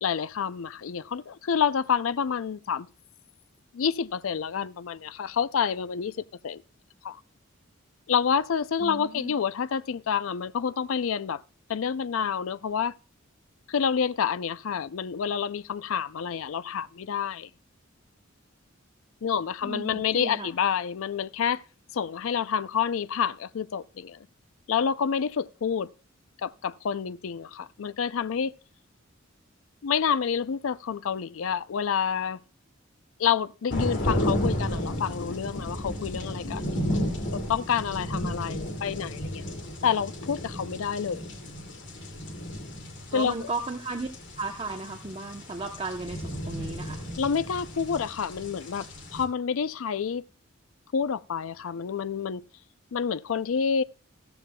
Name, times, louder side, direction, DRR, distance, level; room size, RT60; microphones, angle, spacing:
voice 1, 0.0-2.9 3.7-6.6 7.0-7.2 8.1-11.4 11.7-12.9 13.7-17.5 19.2-21.6 21.9-24.3 24.7-25.9 26.4-28.5 29.8-32.4 33.2-36.8 37.3-39.4 39.8-41.3 43.1-43.5 47.2-48.9 49.1-50.2 50.9-52.4 52.9-53.8, left 7 dB, 75° left, 0.4 m, -28 dB
voice 2, 8.8-9.3 19.6-20.5 38.5-38.9 43.1-44.1 44.4-47.0, right 3 dB, 25° right, 0.8 m, -35 dB
sound 1, 33.7-49.2, equal, 60° left, 2.4 m, -33 dB
14.0 x 14.0 x 2.2 m
head